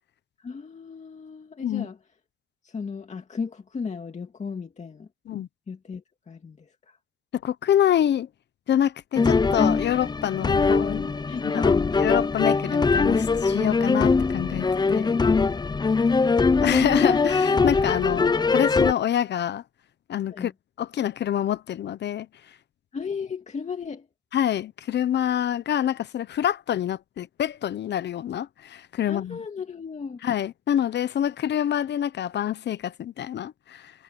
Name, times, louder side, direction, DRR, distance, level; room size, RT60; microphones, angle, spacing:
voice 1, 0.4-2.0 2.6-5.1 5.7-7.0 11.3-11.9 20.3-20.5 22.9-24.1 29.1-30.2, left 5 dB, 35° left, 2.1 m, -35 dB
voice 2, 7.3-8.3 8.7-11.1 11.5-11.7 12.0-15.2 16.6-19.6 20.1-20.5 20.8-22.3 24.3-29.4 30.2-33.9, left 10 dB, 60° left, 1.0 m, -26 dB
sound 1, 9.2-18.9, left 4 dB, 20° left, 0.7 m, -22 dB
cardioid pair, 90°, 20 cm